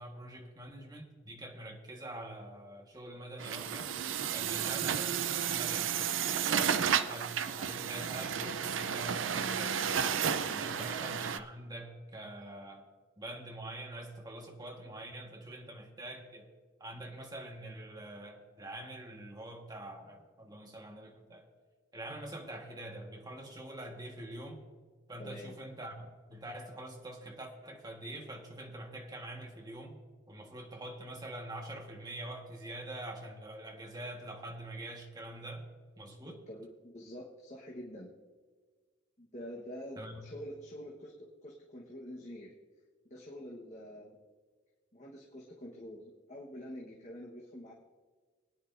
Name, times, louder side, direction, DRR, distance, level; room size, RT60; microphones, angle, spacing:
voice 1, 0.0-3.9 4.3-5.9 6.5-9.8 10.4-12.9 13.2-16.5 16.8-21.4 21.9-24.6 25.1-30.0 30.3-35.6 36.0-36.4 40.0-40.2, right 1 dB, 20° right, 1 dB, 1.5 m, -45 dB
Truck, 3.4-11.4, right 8 dB, 85° right, 0.5 m, -32 dB
voice 2, 4.6-4.9 6.6-6.9 10.6-10.9 25.2-25.6 36.2-38.1 39.2-42.5 43.0-44.2 44.9-47.7, equal, 40° left, -2 dB, 1.3 m, -47 dB
21.0 x 9.9 x 2.6 m, 1.5 s
head